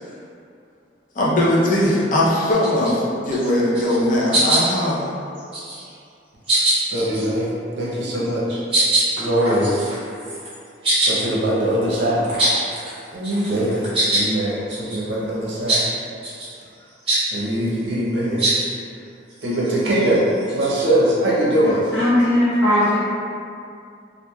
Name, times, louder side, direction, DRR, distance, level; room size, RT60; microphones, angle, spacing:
voice 1, 1.1-5.1, left 1 dB, 45° left, -6 dB, 0.5 m, -19 dB
sound 1, 2.5-2.9 3.3-3.5 3.7-4.1 4.3-4.9 5.4-5.9 6.5-7.3 8.1-8.3 8.7-13.0 13.2-14.3 14.7-15.0 15.7-15.9 16.2-16.5 17.1-17.2 18.4-18.6 19.3-20.9, right 1 dB, 30° right, 0.9 m, -23 dB
voice 2, 6.5-8.6 9.2-9.8 10.9-12.4 12.7-12.9 13.1-15.9 17.3-18.5 19.4-20.2 20.5-21.8, right 1 dB, 70° right, -6 dB, 0.6 m, -22 dB
voice 3, 21.9-23.0, left 1 dB, 70° left, -12 dB, 1.3 m, -17 dB
3.0 x 2.4 x 2.2 m, 2.4 s
head